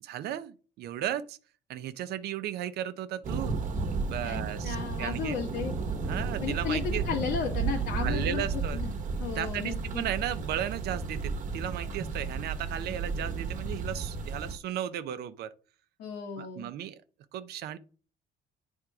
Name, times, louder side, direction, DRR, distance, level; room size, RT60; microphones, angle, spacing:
voice 1, 0.0-1.4 1.7-3.6 4.1-5.4 6.0-7.0 8.0-8.8 9.3-15.5 16.4-17.0 17.3-17.8, right 11 dB, 70° right, 0.7 m, -35 dB
Thunder, 3.2-14.6, right 4 dB, 50° right, 1.1 m, -33 dB
voice 2, 4.2-5.7 6.4-10.1 16.0-16.7, left 7 dB, 85° left, 1.6 m, -35 dB
9.0 x 3.6 x 4.8 m
cardioid pair, 110°, 17 cm